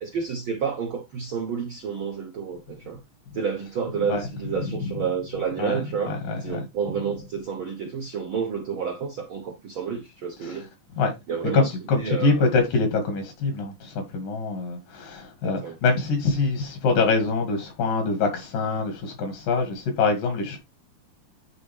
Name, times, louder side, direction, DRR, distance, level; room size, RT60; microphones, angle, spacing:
voice 1, 0.0-3.0 3.3-10.7 11.3-12.5 15.4-15.8, right 6 dB, 75° right, 1.2 m, -30 dB
voice 2, 6.1-6.6 10.5-10.6 11.0-11.1 11.5-20.6, left 4 dB, 80° left, 3.6 m, -24 dB
10.0 x 4.0 x 3.5 m
omnidirectional pair, 3.8 m